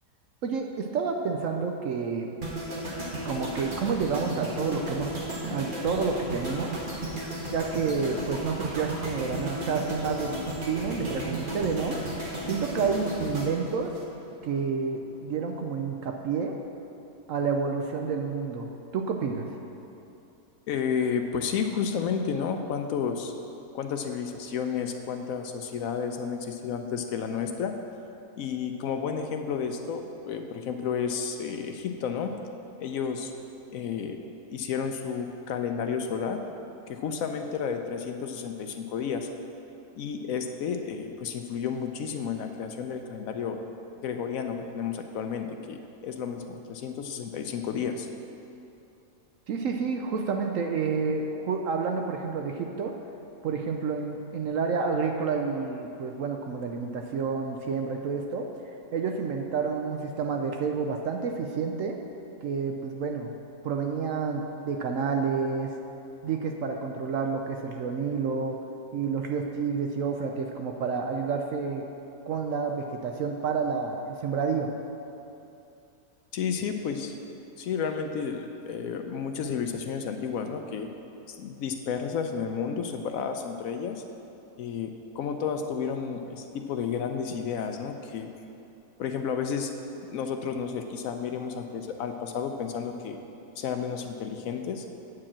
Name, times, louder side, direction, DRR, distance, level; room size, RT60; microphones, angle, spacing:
voice 1, 0.4-2.3 3.2-5.1 5.5-6.7 7.5-12.0 12.5-13.9 14.4-16.5 17.3-19.4 49.5-52.9 53.4-58.5 58.9-62.0 62.4-63.3 63.6-65.7 66.2-68.6 68.9-71.8 72.3-74.7, right 5 dB, 70° right, 3 dB, 0.8 m, -29 dB
sound 1, 2.4-14.6 14.9-15.2, right 1 dB, 35° right, 1.3 m, -34 dB
voice 2, 20.7-23.3 23.7-27.8 28.4-32.3 32.8-33.3 33.7-34.2 34.5-36.4 36.9-39.3 39.9-43.6 44.0-48.1 76.3-77.2 77.6-80.9 81.3-84.0 84.6-88.3 89.0-89.7 90.1-93.2 93.6-94.8, left 6 dB, 70° left, 5 dB, 0.8 m, -31 dB
8.6 x 4.8 x 7.3 m, 2.8 s
omnidirectional pair, 1.8 m